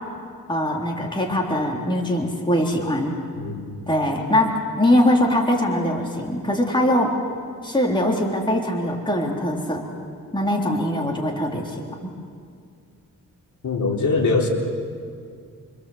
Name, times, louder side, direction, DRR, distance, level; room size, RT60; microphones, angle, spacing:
voice 1, 0.5-3.2 3.9-7.2 7.6-9.9 10.3-11.9, left 1 dB, 15° left, 0 dB, 3.5 m, -22 dB
voice 2, 3.4-3.8 13.6-14.5, left 3 dB, 60° left, 0 dB, 3.7 m, -22 dB
26.5 x 25.0 x 8.0 m, 2.2 s
wide cardioid pair, 115°, 34 cm